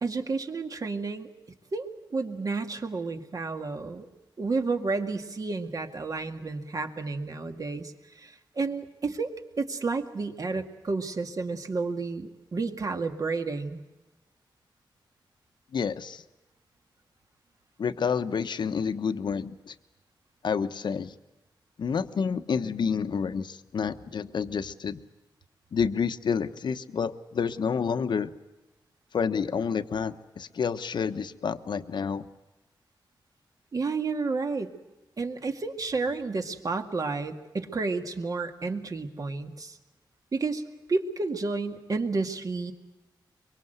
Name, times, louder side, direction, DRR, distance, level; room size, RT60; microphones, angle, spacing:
voice 1, 0.0-1.3 1.7-1.9 2.1-4.1 4.4-9.3 9.6-13.8 33.7-34.7 35.2-39.8 40.3-40.6 40.9-42.7, right 3 dB, 45° right, 6 dB, 2.1 m, -31 dB
voice 2, 15.7-16.2 17.8-19.7 20.4-21.1 21.8-25.0 25.7-28.3 29.1-32.2, left 6 dB, 65° left, 10 dB, 1.1 m, -29 dB
24.0 x 24.0 x 8.0 m, 1.1 s
wide cardioid pair, 110°, 8 cm